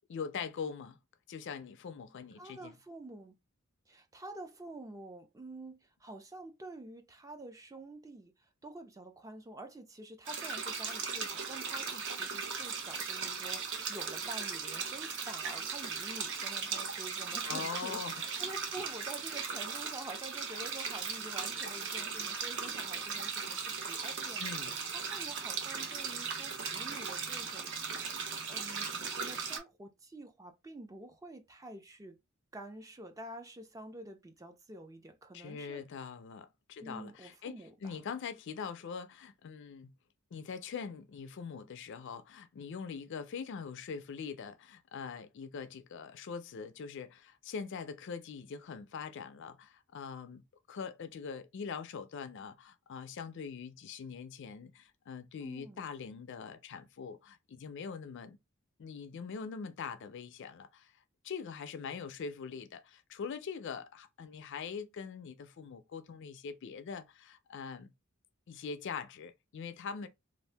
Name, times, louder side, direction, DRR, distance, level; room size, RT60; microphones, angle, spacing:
voice 1, 0.1-1.0 1.3-2.7 17.5-18.2 24.4-24.8 35.3-37.5 37.8-39.9 40.3-58.4 58.8-60.9 61.2-67.9 68.5-70.1, left 6 dB, 55° left, 0.4 m, -43 dB
voice 2, 2.4-3.4 3.9-8.3 8.6-24.4 24.9-27.7 28.0-32.2 32.5-35.8 36.8-38.0 55.4-55.9, right 2 dB, 15° right, 0.4 m, -48 dB
sound 1, 10.2-29.6, right 5 dB, 55° right, 0.7 m, -38 dB
2.7 x 2.4 x 3.3 m
head